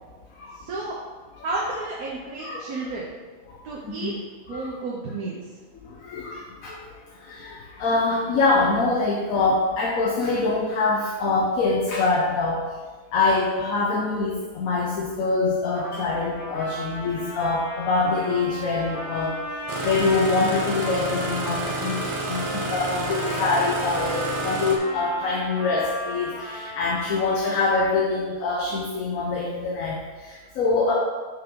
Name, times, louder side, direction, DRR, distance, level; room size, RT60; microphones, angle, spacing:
voice 1, 0.6-1.0 1.4-3.1 3.6-4.1 4.5-5.4 6.3-6.4, right 3 dB, 90° right, -4 dB, 1.4 m, -31 dB
voice 2, 5.7-6.8 7.2-12.7 13.1-19.4 19.8-30.9, left 3 dB, 70° left, -3 dB, 1.2 m, -24 dB
Trumpet, 15.7-28.2, left 1 dB, 40° left, 1.2 m, -36 dB
Engine starting, 19.7-24.8, right 2 dB, 45° right, 0.4 m, -29 dB
5.7 x 5.2 x 3.8 m, 1.3 s
omnidirectional pair, 1.5 m